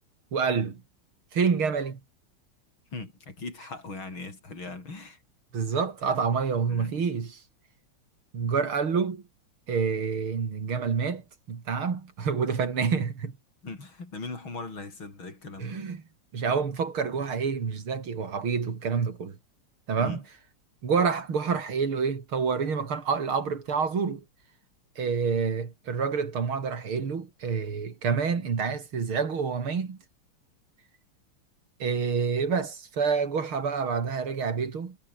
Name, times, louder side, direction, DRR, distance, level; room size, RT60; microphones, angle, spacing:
voice 1, 0.3-0.8 1.3-2.0 5.5-7.4 8.3-9.2 9.7-13.3 15.6-16.0 16.3-19.4 19.9-20.2 20.8-24.2 25.0-30.0 31.8-35.0, right 5 dB, 75° right, 3.7 m, -28 dB
voice 2, 2.9-5.2 6.7-7.0 13.6-15.8 20.0-20.2, left 3 dB, 65° left, 6.3 m, -39 dB
omnidirectional pair, 2.3 m